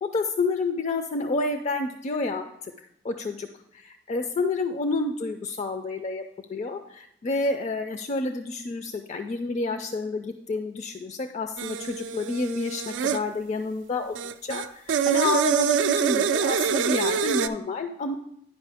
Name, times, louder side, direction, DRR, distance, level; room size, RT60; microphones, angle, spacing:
voice 1, 0.0-2.5 3.0-3.5 3.7-14.2 14.4-18.1, left 3 dB, 40° left, 7 dB, 0.4 m, -29 dB
sound 1, 11.6-13.2 14.2-17.5, right 7 dB, 85° right, 0.3 m, -25 dB
9.9 x 5.1 x 3.4 m, 0.77 s
head